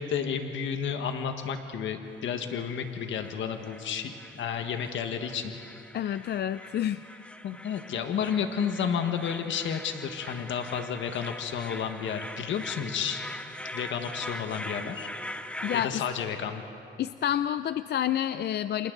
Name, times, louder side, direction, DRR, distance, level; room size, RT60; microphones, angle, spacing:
voice 1, 0.0-6.2 7.4-13.3 13.7-15.1 15.7-16.6, left 7 dB, 75° left, 6 dB, 1.5 m, -32 dB
sound 1, 2.1-15.9, left 1 dB, 5° left, 0.9 m, -42 dB
voice 2, 5.9-7.0 15.6-16.0 17.0-18.9, left 10 dB, 55° left, 13 dB, 0.5 m, -29 dB
29.5 x 26.0 x 4.0 m, 2.8 s
cardioid pair, 90°, 20 cm